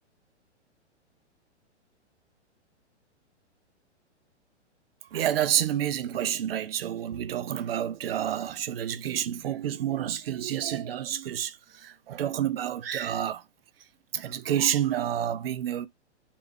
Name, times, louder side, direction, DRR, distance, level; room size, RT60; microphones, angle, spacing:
voice 1, 5.1-11.5 11.8-13.4 14.1-15.9, right 10 dB, 55° right, 0.5 m, -29 dB
3.2 x 2.5 x 3.3 m
figure-of-eight pair, 115°, 35 cm